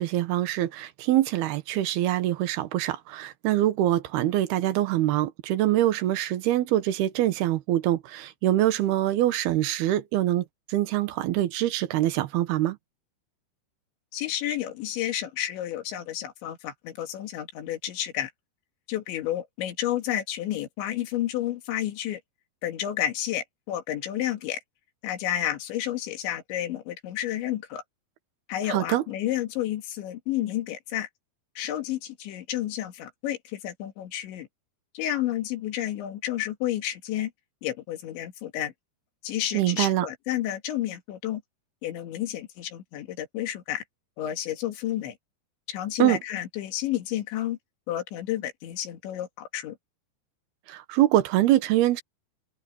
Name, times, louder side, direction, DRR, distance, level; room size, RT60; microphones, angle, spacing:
voice 1, 0.0-12.8 28.7-29.0 39.5-40.1 46.0-46.2 50.7-52.0, right 14 dB, 70° right, 3.1 m, -24 dB
voice 2, 14.1-18.3 18.9-22.2 22.6-24.6 25.0-27.8 28.5-31.1 31.6-34.5 34.9-37.3 37.6-38.7 39.2-41.4 41.8-43.8 44.2-45.2 45.7-47.6 47.9-49.8, left 12 dB, 85° left, 4.4 m, -31 dB
open air
omnidirectional pair, 5.1 m